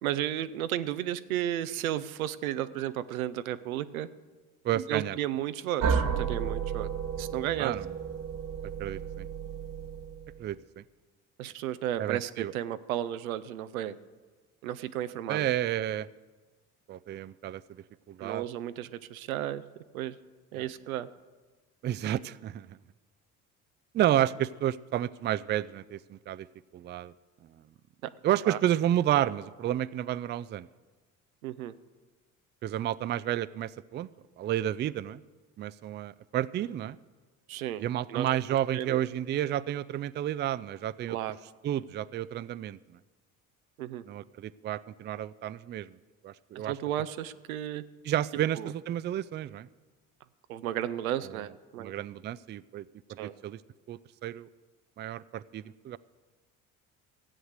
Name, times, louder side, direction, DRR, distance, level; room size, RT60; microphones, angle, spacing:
voice 1, 0.0-4.1 4.7-6.9 7.2-7.7 11.4-13.9 14.6-15.5 18.2-19.6 19.9-20.2 20.5-21.1 28.0-28.1 28.5-28.6 31.4-31.7 37.5-37.8 38.1-38.3 38.7-39.0 41.1-41.4 43.8-44.0 46.6-47.8 48.6-48.7 50.5-51.9 53.2-53.3, right 12 dB, 90° right, 13 dB, 0.6 m, -33 dB
voice 2, 4.6-5.2 7.6-7.9 8.8-9.3 10.4-10.8 12.0-12.5 15.3-16.1 16.9-18.4 20.5-20.7 21.8-22.8 23.9-26.5 26.7-27.1 28.2-30.7 32.6-34.1 34.4-35.2 35.6-37.0 37.8-41.2 41.6-43.0 44.1-46.0 46.2-46.7 48.0-49.7 51.2-51.4 51.8-53.6 53.9-54.5 55.0-56.0, right 12 dB, 30° right, 17 dB, 0.3 m, -31 dB
sound 1, 5.8-10.5, right 6 dB, 50° right, 1.5 m, -32 dB
15.0 x 7.9 x 6.5 m, 1.3 s
hypercardioid pair, 60°, 41 cm